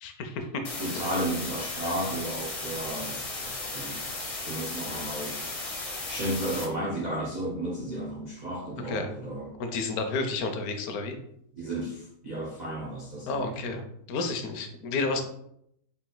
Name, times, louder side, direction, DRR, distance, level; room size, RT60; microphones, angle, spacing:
voice 1, 0.0-0.6 8.8-9.1 9.6-11.2 13.3-13.8 14.1-15.2, left 3 dB, 70° left, 6 dB, 1.0 m, -31 dB
sound 1, 0.6-6.6, left 2 dB, 40° left, 0.5 m, -35 dB
voice 2, 0.8-4.0 4.4-5.5 6.0-9.6 11.5-13.8, right 1 dB, 90° right, -4 dB, 0.3 m, -33 dB
4.0 x 2.4 x 3.8 m, 0.74 s
omnidirectional pair, 1.7 m